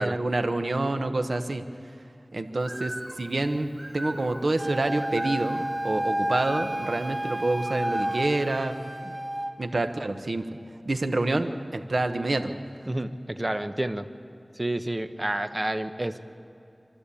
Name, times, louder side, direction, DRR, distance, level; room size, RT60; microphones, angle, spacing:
voice 1, 0.0-1.6 2.3-9.1 9.6-10.6 10.8-12.5, right 2 dB, 80° right, 8 dB, 1.1 m, -27 dB
Bird, 2.6-8.6, right 1 dB, 55° right, 3.1 m, -42 dB
Wind instrument woodwind instrument, 4.6-9.6, right 1 dB, 15° right, 1.5 m, -31 dB
voice 2, 12.9-14.1 14.6-16.2, right 1 dB, 35° right, 9 dB, 1.0 m, -29 dB
26.5 x 12.5 x 8.5 m, 2.7 s
wide cardioid pair, 50°, 0 cm